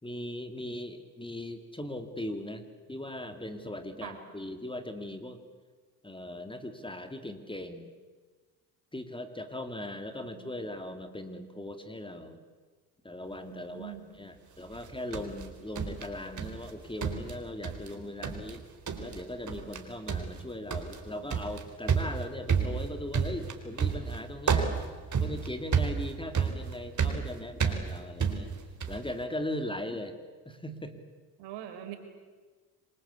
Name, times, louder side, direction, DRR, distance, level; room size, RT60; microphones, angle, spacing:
voice 1, 0.0-2.6 2.9-5.4 6.0-7.9 8.9-12.4 13.0-18.6 19.0-24.7 25.2-28.5 28.9-30.2 30.4-30.9, left 1 dB, 10° left, 7 dB, 2.8 m, -39 dB
voice 2, 13.5-14.2 31.4-32.0, right 11 dB, 75° right, 6 dB, 4.7 m, -43 dB
sound 1, 14.7-16.7 17.0-17.9 18.2-18.6 18.9-19.2 19.5-19.8 20.1-29.1, right 6 dB, 40° right, 4.1 m, -31 dB
27.0 x 22.5 x 8.5 m, 1.4 s
supercardioid pair, 65°, 44 cm